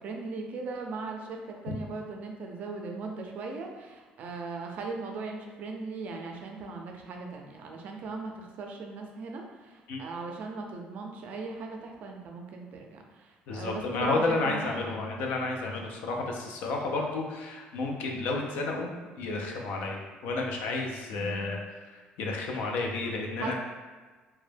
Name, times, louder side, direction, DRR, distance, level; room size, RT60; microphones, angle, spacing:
voice 1, 0.0-15.0 21.1-21.6 23.4-23.5, right 3 dB, 55° right, 2 dB, 0.4 m, -39 dB
voice 2, 13.5-18.9 19.2-21.8 22.2-23.5, left 3 dB, 80° left, 1 dB, 0.4 m, -31 dB
2.2 x 2.0 x 3.2 m, 1.4 s
cardioid pair, 135°, 3 cm